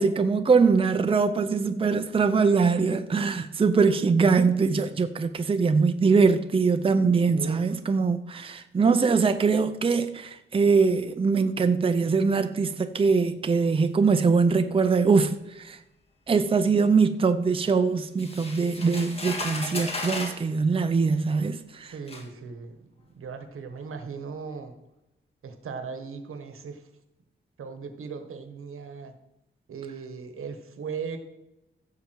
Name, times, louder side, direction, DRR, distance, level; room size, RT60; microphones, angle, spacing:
voice 1, 0.0-15.8 16.3-21.9, right 4 dB, 25° right, 0.6 m, -22 dB
voice 2, 7.3-7.8 21.8-22.9 23.2-24.8 25.4-26.8 27.6-29.1 29.7-31.2, right 5 dB, 90° right, 1.4 m, -38 dB
sound 1, 18.2-20.4 21.4-21.5 22.1-22.3, left 2 dB, 30° left, 1.9 m, -34 dB
15.5 x 7.0 x 4.6 m
wide cardioid pair, 165°, 21 cm